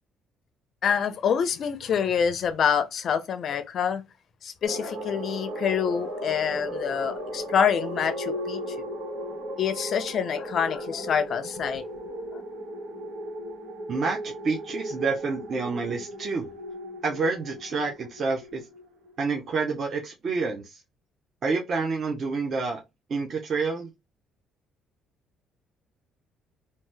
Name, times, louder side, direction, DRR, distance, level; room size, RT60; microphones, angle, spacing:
voice 1, 0.8-4.0 4.4-8.8 9.6-11.8 12.3-12.4, left 7 dB, 45° left, 0.4 m, -26 dB
sound 1, 4.6-19.2, equal, 90° right, 1.1 m, -36 dB
voice 2, 13.9-16.5 17.0-18.6 19.2-20.8 21.4-22.8 23.1-23.9, right 4 dB, 40° right, 0.5 m, -28 dB
2.7 x 2.1 x 3.2 m
cardioid pair, 150°, 0 cm